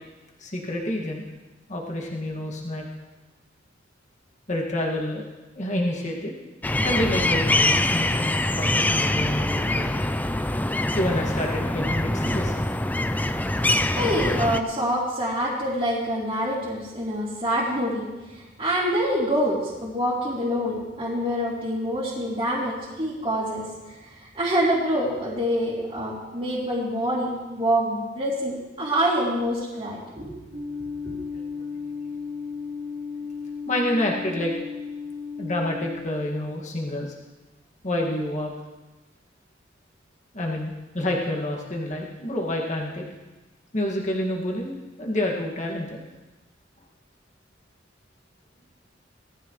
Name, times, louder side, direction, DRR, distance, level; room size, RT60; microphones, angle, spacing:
voice 1, 0.4-1.3 1.7-2.8 4.5-5.3 5.6-6.3 6.8-10.1 10.9-12.5 33.7-34.5 35.4-37.1 37.8-38.5 40.3-43.1 43.7-46.0, left 1 dB, 40° left, -2 dB, 2.1 m, -28 dB
sound 1, 6.6-14.6, left 1 dB, 10° left, 0.4 m, -24 dB
voice 2, 13.9-23.7 24.2-30.5 31.0-31.1, equal, 30° right, -9 dB, 3.3 m, -26 dB
sound 2, 30.5-36.0, left 5 dB, 70° right, 2.4 m, -34 dB
19.0 x 13.5 x 3.2 m, 1.1 s
head